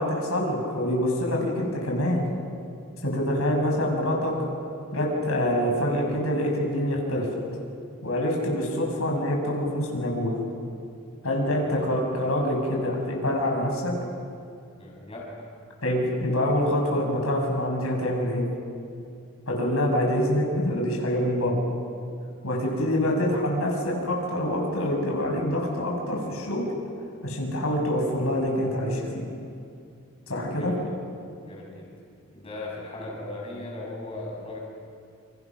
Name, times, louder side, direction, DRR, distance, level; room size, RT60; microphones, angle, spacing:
voice 1, 0.0-2.3 3.0-4.3 4.9-7.3 8.0-10.4 11.2-13.9 15.8-18.4 19.5-21.6 22.4-26.7 27.2-29.1 30.3-30.7, left 1 dB, 75° left, 0 dB, 6.6 m, -25 dB
voice 2, 14.8-15.4 30.3-30.8 31.4-31.9 32.3-34.6, left 2 dB, 25° left, -3 dB, 6.4 m, -38 dB
29.0 x 28.5 x 6.2 m, 2.4 s
head